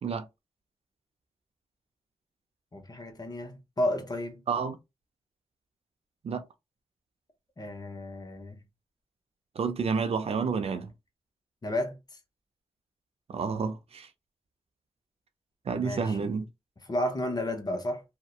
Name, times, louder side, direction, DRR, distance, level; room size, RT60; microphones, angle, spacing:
voice 1, 2.7-4.4 7.6-8.6 11.6-12.0 15.8-16.3 16.9-18.0, left 1 dB, 35° left, 0.8 m, -32 dB
voice 2, 4.5-4.8 6.2-6.4 9.6-10.9 13.3-14.1 15.7-16.4, right 5 dB, 60° right, 0.4 m, -30 dB
2.6 x 2.1 x 2.3 m
cardioid pair, 50°, 12 cm